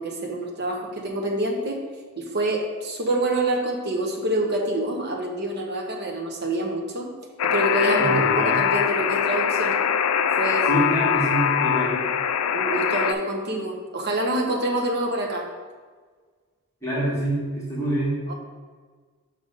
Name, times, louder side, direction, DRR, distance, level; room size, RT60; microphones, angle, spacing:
voice 1, 0.0-1.8 2.2-7.1 7.4-9.7 10.3-10.8 12.5-15.5 18.3-18.4, right 1 dB, 50° right, 1 dB, 1.0 m, -26 dB
Alarm, 7.4-13.1, left 8 dB, 90° left, 0.4 m, -22 dB
voice 2, 8.0-8.6 10.7-12.0 16.8-18.2, right 1 dB, 10° left, -9 dB, 2.0 m, -25 dB
5.9 x 4.0 x 5.3 m, 1.5 s
head